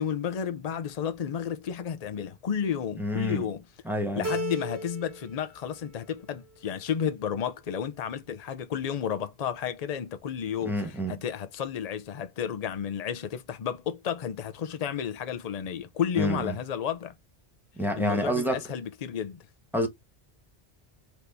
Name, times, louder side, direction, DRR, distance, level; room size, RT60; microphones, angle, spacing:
voice 1, 0.0-3.6 4.2-10.7 11.1-17.1 18.0-19.5, left 8 dB, 45° left, 0.6 m, -32 dB
voice 2, 3.0-3.5 3.8-4.3 10.6-11.2 16.2-16.5 17.8-18.6 19.7-19.9, equal, ahead, 1.1 m, -28 dB
Keyboard (musical), 4.2-5.3 5.7-6.4, right 1 dB, 85° right, 1.6 m, -35 dB
4.0 x 3.0 x 3.3 m
omnidirectional pair, 1.0 m